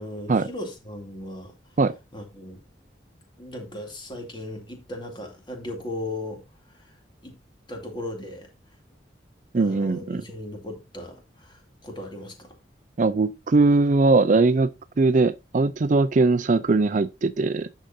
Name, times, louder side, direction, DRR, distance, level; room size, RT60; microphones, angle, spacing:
voice 1, 0.0-1.8 2.1-2.6 3.4-7.0 7.2-7.4 7.7-8.5 9.6-12.5, left 1 dB, 25° left, 2.4 m, -37 dB
voice 2, 9.5-10.2 13.0-14.7 15.0-17.7, right 3 dB, 40° right, 0.4 m, -20 dB
10.0 x 6.5 x 2.7 m
head